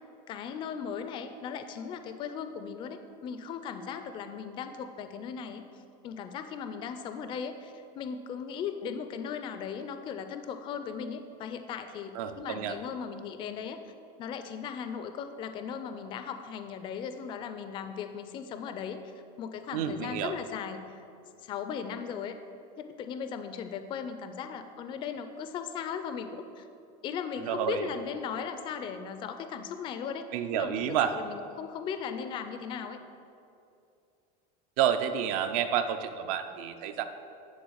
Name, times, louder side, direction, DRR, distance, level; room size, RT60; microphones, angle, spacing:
voice 1, 0.3-5.6 6.0-13.8 14.2-19.0 19.4-21.0 21.4-22.3 22.8-26.7 27.0-30.3 30.5-33.0, left 7 dB, 25° left, 9 dB, 0.4 m, -37 dB
voice 2, 12.1-12.8 19.7-20.4 27.4-28.0 30.3-31.2 34.8-37.0, right 9 dB, 65° right, 8 dB, 0.6 m, -29 dB
10.0 x 3.8 x 6.3 m, 2.5 s
cardioid pair, 165°, 20 cm